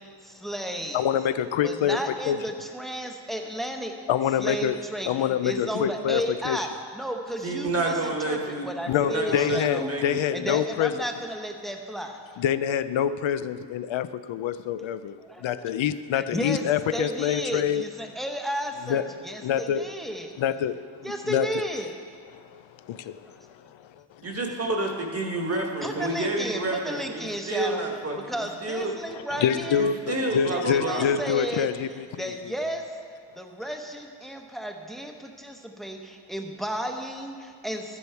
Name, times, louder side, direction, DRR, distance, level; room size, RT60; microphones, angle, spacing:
voice 1, 0.0-1.0 1.6-4.0 4.4-9.9 10.3-12.2 15.2-15.7 16.1-16.6 16.9-20.3 21.0-22.0 25.2-25.3 25.8-27.8 28.3-29.9 30.5-31.7 32.2-32.8 33.4-38.0, equal, ahead, 0.9 m, -33 dB
voice 2, 0.9-2.4 4.1-4.8 5.1-6.6 8.9-11.0 12.4-15.2 15.4-17.9 18.9-19.0 19.4-19.9 20.4-20.9 21.2-21.6 22.3-24.2 29.1-32.3, left 9 dB, 85° left, 0.5 m, -26 dB
voice 3, 7.4-8.7 9.0-10.2 24.2-28.9 29.8-31.2, right 2 dB, 30° right, 1.5 m, -29 dB
13.0 x 10.0 x 4.6 m
wide cardioid pair, 130°, 45 cm